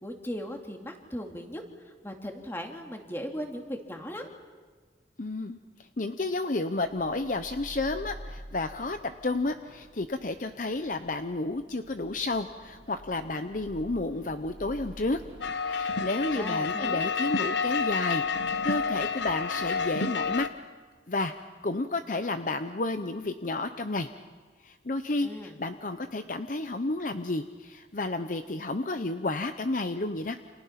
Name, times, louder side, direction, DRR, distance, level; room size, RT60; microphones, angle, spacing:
voice 1, 0.0-4.3 16.3-17.1 25.2-25.6, equal, 15° left, 3 dB, 2.5 m, -38 dB
voice 2, 5.2-15.2 15.6-18.2 18.6-20.5 21.1-21.3 21.6-24.1 24.6-30.4, left 2 dB, 45° left, 9 dB, 0.8 m, -31 dB
sound 1, 6.8-15.5, equal, 65° right, 1.5 m, -48 dB
sound 2, 15.4-20.5, left 5 dB, 85° left, 1.0 m, -29 dB
29.5 x 27.5 x 5.9 m, 1.5 s
head